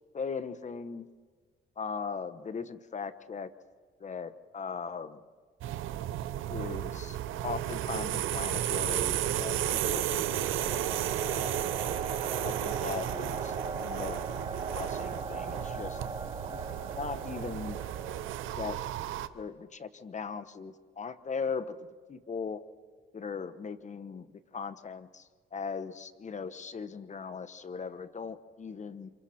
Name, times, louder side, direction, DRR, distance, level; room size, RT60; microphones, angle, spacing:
voice 1, 0.1-1.1 1.8-3.5 4.0-5.2 6.5-7.2 7.4-10.9 11.2-11.7 12.4-14.2 14.7-16.0 16.5-16.6 16.9-17.8 18.5-18.8 19.3-22.6 23.1-29.1, left 5 dB, 35° left, 12 dB, 1.2 m, -39 dB
sound 1, 5.6-19.3, right 12 dB, 85° right, 0.8 m, -33 dB
sound 2, 8.3-18.8, right 3 dB, 25° right, 1.3 m, -40 dB
28.5 x 26.5 x 4.4 m, 1.5 s
cardioid pair, 90°, 20 cm